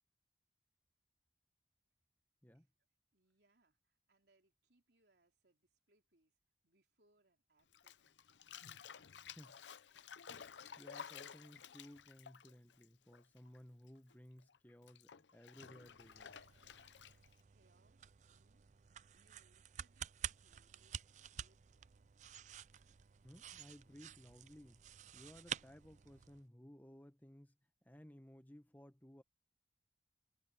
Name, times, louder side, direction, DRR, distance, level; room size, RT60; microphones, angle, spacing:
voice 1, 3.1-6.4 6.6-8.4 8.7-9.0 17.5-18.6 19.1-22.2, right 2 dB, 70° right, 3.9 m, -78 dB
Bathtub (filling or washing), 7.7-13.6 13.8-17.4, left 7 dB, 90° left, 0.7 m, -54 dB
voice 2, 10.8-16.4 23.2-24.8 25.1-27.5 27.8-29.2, equal, 10° left, 1.4 m, -59 dB
sound 1, 15.6-26.4, right 9 dB, 40° right, 0.4 m, -51 dB
head